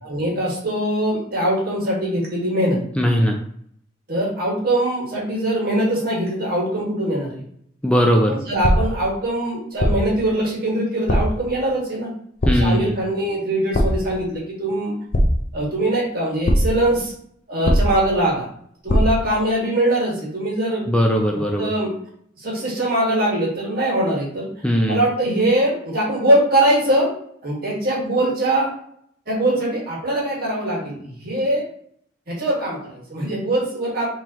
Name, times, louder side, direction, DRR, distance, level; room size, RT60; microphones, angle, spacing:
voice 1, 0.0-2.8 4.1-7.4 8.3-12.1 12.5-14.9 15.5-17.1 17.5-18.5 18.8-20.8 21.6-21.9 22.4-24.5 24.9-27.1 27.4-28.7 29.3-31.6 32.3-34.1, right 1 dB, 55° right, -3 dB, 1.8 m, -22 dB
voice 2, 3.0-3.4 7.8-8.3 12.5-12.9 20.9-21.7 24.6-25.0, equal, 5° left, 1 dB, 0.5 m, -18 dB
sound 1, 8.6-9.1 9.8-10.2 11.1-11.5 12.4-12.9 13.7-14.2 15.1-15.7 16.4-16.9 17.6-18.2 18.9-19.3, equal, 50° left, 0.7 m, -20 dB
4.3 x 3.9 x 3.0 m, 0.64 s
head